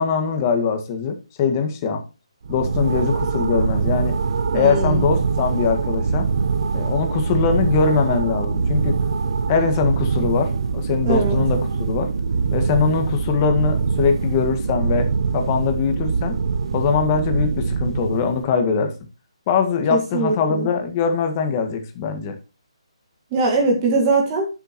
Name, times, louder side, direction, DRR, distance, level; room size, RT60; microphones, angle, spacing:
voice 1, 0.0-2.0 2.5-4.2 4.5-6.3 6.7-9.0 9.5-12.1 12.5-15.1 15.3-16.4 16.7-18.9 19.5-22.4, left 5 dB, 30° left, 6 dB, 1.8 m, -22 dB
sound 1, 2.4-18.4, right 5 dB, 55° right, 1.0 m, -23 dB
voice 2, 4.5-5.1 11.1-11.4 19.9-20.7 23.3-24.5, right 3 dB, 25° right, 0 dB, 2.1 m, -21 dB
11.5 x 6.9 x 3.0 m, 0.30 s
figure-of-eight pair, 150°, 3 cm